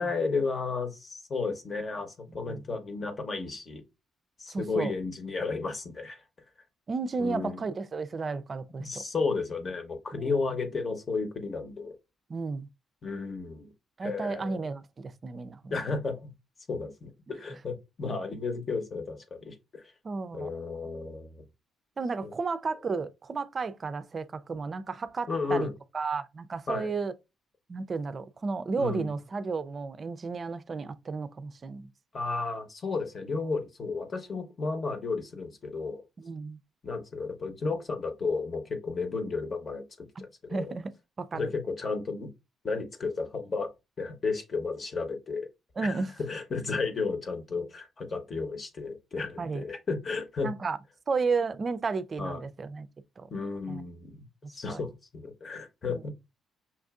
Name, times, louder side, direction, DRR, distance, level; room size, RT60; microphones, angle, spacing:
voice 1, 0.0-3.8 4.4-6.2 7.2-7.6 8.8-11.9 13.0-13.7 14.0-14.7 15.7-16.3 16.7-19.8 20.3-21.4 22.2-22.3 25.3-25.7 26.7-26.9 28.8-29.1 32.1-36.0 36.8-40.7 41.3-42.3 42.6-43.7 44.0-45.5 45.8-50.5 52.2-52.4 53.3-54.3 54.5-56.1, left 4 dB, 40° left, 1.0 m, -33 dB
voice 2, 2.3-2.6 4.5-4.9 6.9-9.0 10.1-10.5 12.3-12.7 14.0-15.7 20.0-20.5 22.0-27.1 27.7-31.9 36.2-36.6 40.2-40.3 40.5-41.5 45.8-46.1 49.4-49.6 50.4-50.8 51.1-52.9 53.2-53.3 53.7-53.8 54.4-54.8 55.9-56.1, right 4 dB, 40° right, 0.4 m, -33 dB
5.7 x 2.5 x 2.4 m
cardioid pair, 90°, 0 cm